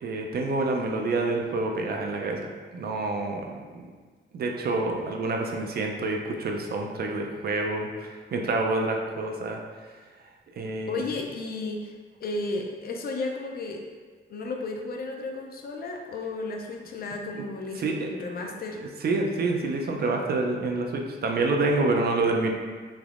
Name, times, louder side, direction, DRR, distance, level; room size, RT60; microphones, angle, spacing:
voice 1, 0.0-2.5 2.7-3.9 4.3-9.6 10.6-11.0 17.4-17.5 17.8-18.1 19.0-22.5, right 3 dB, 55° right, 1 dB, 0.4 m, -27 dB
voice 2, 10.9-12.0 12.2-13.8 14.3-18.8, left 3 dB, 50° left, 2 dB, 0.4 m, -33 dB
3.4 x 3.0 x 2.4 m, 1.5 s
wide cardioid pair, 145°, 20 cm